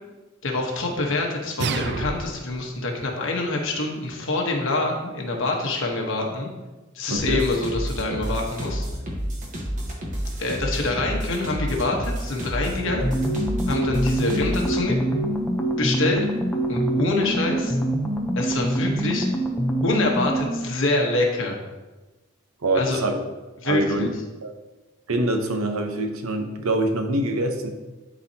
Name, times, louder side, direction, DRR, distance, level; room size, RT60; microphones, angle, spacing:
voice 1, 0.4-6.5 6.9-8.8 10.4-13.1 13.7-15.0 15.8-16.2 16.7-17.8 18.3-19.3 19.8-21.6 22.7-23.0 23.6-24.1, left 2 dB, 65° left, 0 dB, 1.2 m, -25 dB
sound 1, 1.6-2.6, right 4 dB, 55° right, 0.5 m, -28 dB
voice 2, 7.1-7.4 22.6-23.2 23.6-24.1 24.4-24.5 25.1-27.7, right 1 dB, 80° right, 5 dB, 0.9 m, -24 dB
sound 2, 7.2-14.8, equal, 40° right, 1.3 m, -30 dB
sound 3, 13.0-20.7, right 1 dB, 10° left, 0.7 m, -25 dB
11.5 x 4.1 x 2.9 m, 1.2 s
head